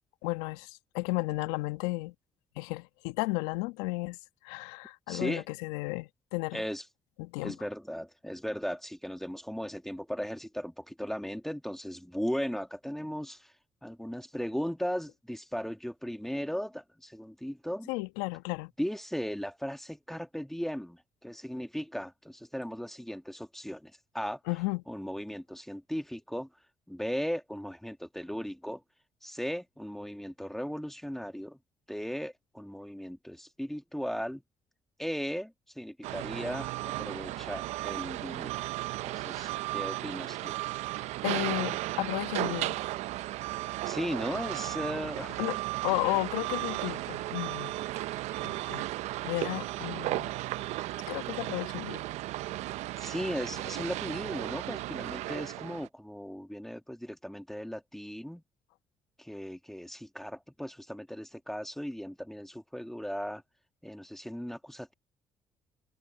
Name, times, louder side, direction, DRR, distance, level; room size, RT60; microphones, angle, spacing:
voice 1, 0.2-2.1 2.5-4.2 4.4-6.6 7.2-7.5 17.9-18.7 24.5-24.8 41.2-42.8 45.2-45.6 45.8-47.7 48.4-48.8 49.2-50.3 51.1-52.0, left 22 dB, 80° left, 1.7 m, -33 dB
voice 2, 5.1-5.4 6.5-6.8 7.4-13.5 13.8-17.9 18.8-24.4 24.9-26.5 26.9-28.8 29.2-31.6 31.9-34.4 35.0-38.6 39.0-40.5 43.9-45.4 46.1-46.2 53.0-58.4 59.2-63.4 63.8-64.9, equal, 5° left, 2.2 m, -37 dB
sound 1, 36.0-55.9, right 17 dB, 75° right, 0.9 m, -35 dB
hypercardioid pair, 50°, 12 cm